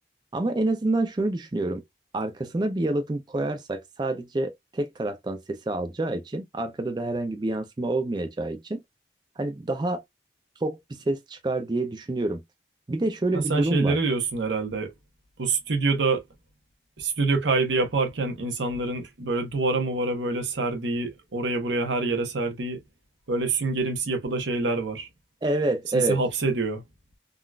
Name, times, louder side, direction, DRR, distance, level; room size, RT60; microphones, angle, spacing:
voice 1, 0.3-1.8 2.1-8.8 9.4-10.0 10.6-12.4 12.9-14.0 25.4-26.2, right 2 dB, 25° right, 0.4 m, -27 dB
voice 2, 13.3-14.9 15.4-16.2 17.0-22.8 23.3-25.1 25.9-26.8, right 3 dB, 85° right, 0.9 m, -26 dB
3.8 x 2.4 x 2.2 m
head